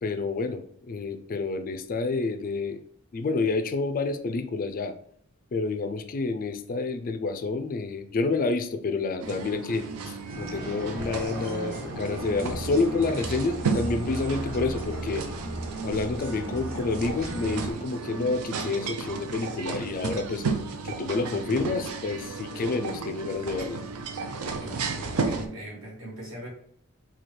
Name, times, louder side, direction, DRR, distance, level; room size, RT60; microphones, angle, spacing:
voice 1, 0.0-2.8 3.1-4.9 5.5-15.3 15.8-20.4 20.8-23.8, left 3 dB, 40° left, 8 dB, 0.3 m, -29 dB
sound 1, 9.2-25.5, right 4 dB, 80° right, 0.5 m, -34 dB
sound 2, 10.3-17.7, right 1 dB, 40° right, 0.9 m, -36 dB
voice 2, 24.4-26.5, right 1 dB, 65° right, -2 dB, 1.4 m, -40 dB
4.3 x 2.3 x 3.1 m, 0.64 s
head